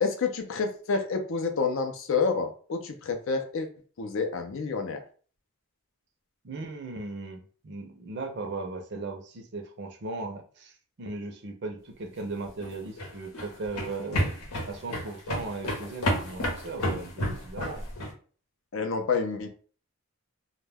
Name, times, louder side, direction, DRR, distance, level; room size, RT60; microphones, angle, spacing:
voice 1, 0.0-3.7 4.0-5.0 18.7-19.5, left 5 dB, 60° left, 5 dB, 0.5 m, -28 dB
voice 2, 6.4-10.7 11.0-14.3 14.7-17.8, right 3 dB, 50° right, 4 dB, 0.5 m, -37 dB
sound 1, 12.5-18.1, equal, 80° left, 0.9 m, -31 dB
2.2 x 2.2 x 3.3 m, 0.41 s
head